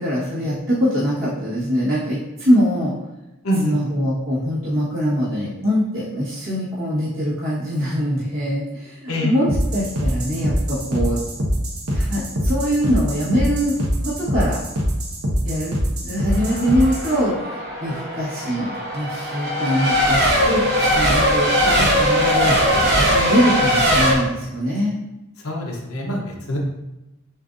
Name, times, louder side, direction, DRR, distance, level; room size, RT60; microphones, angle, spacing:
voice 1, 0.0-2.9 3.6-11.2 11.9-13.8 14.0-14.6 15.4-15.7 16.0-22.6 23.1-25.0, equal, 65° right, -10 dB, 1.4 m, -23 dB
voice 2, 3.4-3.8 9.1-9.3 25.4-26.6, left 1 dB, 85° left, -1 dB, 0.9 m, -24 dB
sound 1, 9.5-17.1, equal, 90° right, 0.9 m, -24 dB
Race car auto racing / Accelerating revving vroom / Mechanisms, 16.3-24.1, equal, 50° right, 0.9 m, -20 dB
7.0 x 2.5 x 2.6 m, 0.98 s
head